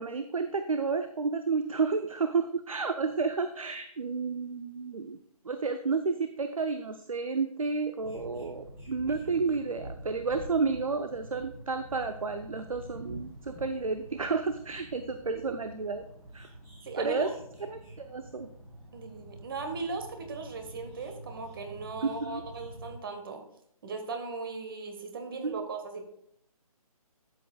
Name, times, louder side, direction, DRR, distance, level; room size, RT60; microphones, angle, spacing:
voice 1, 0.0-5.2 5.4-16.0 16.3-16.5 17.0-17.3 17.7-18.5 22.0-22.4 25.4-25.7, right 4 dB, 65° right, 9 dB, 0.6 m, -31 dB
sound 1, 8.0-23.0, right 1 dB, 10° right, 2.2 m, -47 dB
voice 2, 16.8-17.3 18.9-23.4 23.8-26.0, right 4 dB, 35° right, 5 dB, 1.4 m, -38 dB
12.0 x 7.7 x 2.3 m, 0.71 s
figure-of-eight pair, 145°, 19 cm